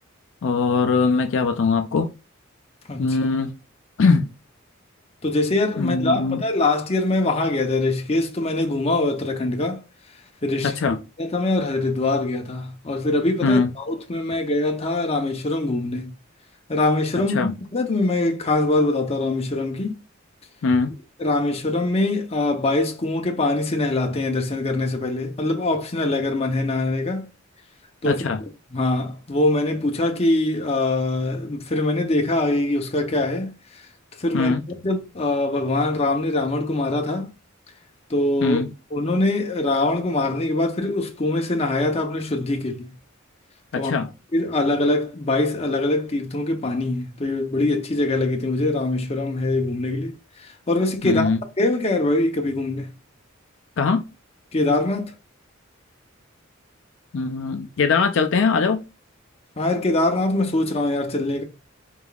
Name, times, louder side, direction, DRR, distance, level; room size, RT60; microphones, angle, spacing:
voice 1, 0.4-2.1 3.0-3.6 4.0-4.3 5.8-6.4 10.6-11.0 13.4-13.7 17.3-17.5 20.6-20.9 28.0-28.4 34.3-34.6 38.4-38.7 43.7-44.1 51.0-51.4 53.8-54.1 57.1-58.8, left 4 dB, 65° left, 0.4 m, -21 dB
voice 2, 5.2-9.8 10.4-10.7 11.2-13.6 13.9-16.1 16.7-20.0 21.2-27.3 28.0-28.2 28.7-33.5 34.2-34.5 34.8-37.3 38.1-38.6 38.9-42.9 43.8-43.9 44.3-50.1 50.7-51.3 51.6-52.9 54.5-55.1 59.6-61.4, left 2 dB, 30° left, 0.7 m, -23 dB
4.5 x 3.5 x 2.3 m
head